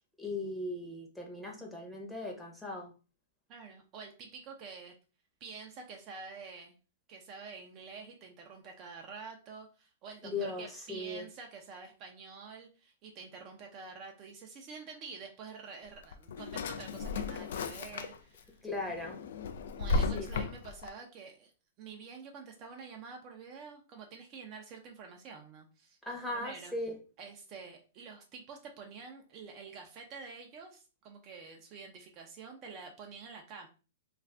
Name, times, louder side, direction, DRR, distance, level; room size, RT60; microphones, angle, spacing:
voice 1, 0.2-2.9 10.2-11.3 18.6-19.2 20.1-20.3 26.0-27.0, left 2 dB, 5° left, -1 dB, 0.8 m, -38 dB
voice 2, 3.5-4.9 5.4-6.7 7.1-18.6 19.8-21.5 21.8-26.0 26.3-26.7 27.2-33.7, right 5 dB, 35° right, 2 dB, 0.5 m, -48 dB
Drawer open or close, 15.9-18.4 18.8-20.9, left 3 dB, 70° left, 0.3 m, -35 dB
2.4 x 2.3 x 3.3 m, 0.34 s
hypercardioid pair, 130°, 0 cm